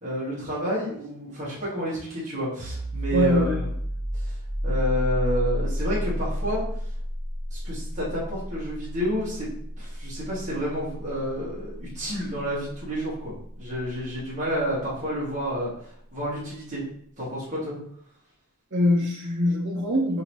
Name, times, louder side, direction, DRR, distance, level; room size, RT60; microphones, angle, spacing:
voice 1, 0.0-3.7 4.1-4.4 4.6-6.6 7.5-9.5 9.8-16.8 17.2-17.8, equal, 35° right, -8 dB, 1.7 m, -30 dB
sound 1, 2.6-14.0, equal, 35° left, 0.9 m, -31 dB
voice 2, 3.1-3.6 18.7-20.2, left 1 dB, 55° right, -1 dB, 0.8 m, -23 dB
5.6 x 2.8 x 3.0 m, 0.65 s
head